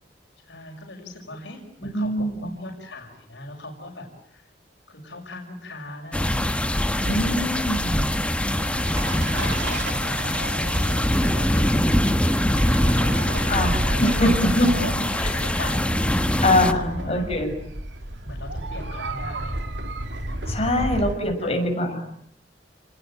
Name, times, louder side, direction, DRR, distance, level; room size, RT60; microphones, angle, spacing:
voice 1, 0.5-4.5 4.9-7.5 8.6-9.0 9.4-11.8 12.8-16.1 16.7-17.3 18.2-19.8 20.2-21.7, left 1 dB, 75° left, 1 dB, 6.2 m, -39 dB
voice 2, 1.9-2.5 7.0-7.9 13.5-13.7 14.0-14.7 15.2-15.5 16.4-17.5 20.4-22.0, left 1 dB, 35° left, 4 dB, 6.7 m, -23 dB
sound 1, 6.1-16.7, left 1 dB, 5° left, 1.3 m, -23 dB
sound 2, 8.9-21.1, right 1 dB, 75° right, 2.8 m, -32 dB
30.0 x 21.0 x 9.0 m, 0.66 s
head